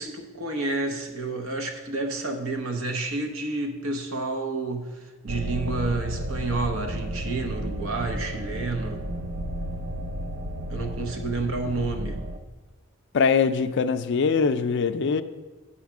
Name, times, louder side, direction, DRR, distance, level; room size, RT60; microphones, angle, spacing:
voice 1, 0.0-9.0 10.7-12.2, right 2 dB, 75° right, 0.8 m, -30 dB
sound 1, 5.3-12.4, right 1 dB, 50° right, 0.5 m, -32 dB
voice 2, 13.1-15.2, left 5 dB, 60° left, 0.4 m, -22 dB
8.7 x 4.4 x 6.0 m
head